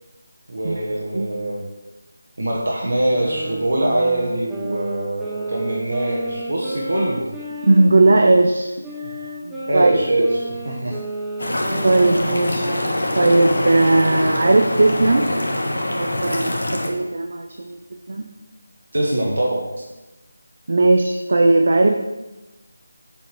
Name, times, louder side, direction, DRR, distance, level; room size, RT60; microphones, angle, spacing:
voice 1, 0.5-1.7 2.4-7.3 9.4-10.3 10.6-11.0 12.2-12.4 18.9-19.7, right 1 dB, 80° right, -3 dB, 1.1 m, -23 dB
sound 1, 2.9-8.3 8.8-13.7, right 1 dB, 5° right, 0.6 m, -32 dB
voice 2, 7.6-8.7 9.7-9.9 10.2-10.3 11.8-12.7 13.1-15.3 16.0-17.8 18.1-18.3 20.7-21.9, right 2 dB, 60° right, 4 dB, 0.5 m, -17 dB
sound 2, 11.4-16.9, left 1 dB, 75° left, 1.1 m, -24 dB
7.1 x 2.8 x 4.6 m, 1.1 s
figure-of-eight pair, 165°, 0 cm